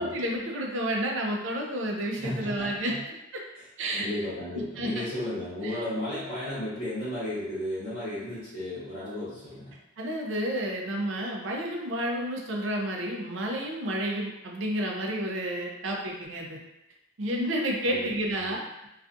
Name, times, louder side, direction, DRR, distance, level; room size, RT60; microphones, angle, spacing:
voice 1, 0.0-2.9 3.3-3.4 3.8-4.1 4.8-5.0 5.6-5.8 10.0-16.6 17.2-18.9, right 1 dB, 65° right, 0 dB, 0.5 m, -30 dB
voice 2, 2.1-3.0 3.5-3.6 3.9-9.7 17.8-18.5, left 1 dB, 25° left, -12 dB, 0.9 m, -34 dB
2.4 x 2.3 x 2.5 m, 0.90 s
head